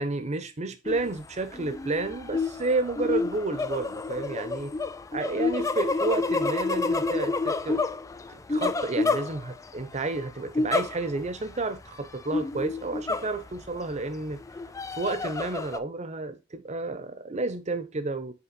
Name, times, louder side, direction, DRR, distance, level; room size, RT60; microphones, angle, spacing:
voice 1, 0.0-4.7 5.1-7.8 8.3-14.4 14.9-18.3, right 3 dB, 35° right, 0.7 m, -31 dB
sound 1, 0.9-1.2 1.5-9.8 10.6-11.3 11.6-11.7 12.3-13.8 14.3-15.8, left 3 dB, 15° left, 0.3 m, -29 dB
5.8 x 4.1 x 4.0 m
head